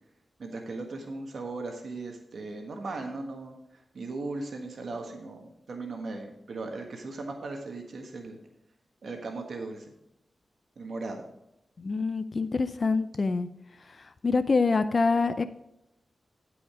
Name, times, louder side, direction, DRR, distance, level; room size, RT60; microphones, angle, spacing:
voice 1, 0.4-8.4 9.0-9.9 10.8-11.2, right 3 dB, 70° right, 3 dB, 1.5 m, -38 dB
voice 2, 11.8-13.5 14.2-15.4, left 4 dB, 50° left, 12 dB, 0.5 m, -25 dB
12.5 x 5.0 x 4.9 m, 0.84 s
cardioid pair, 70°, 0 cm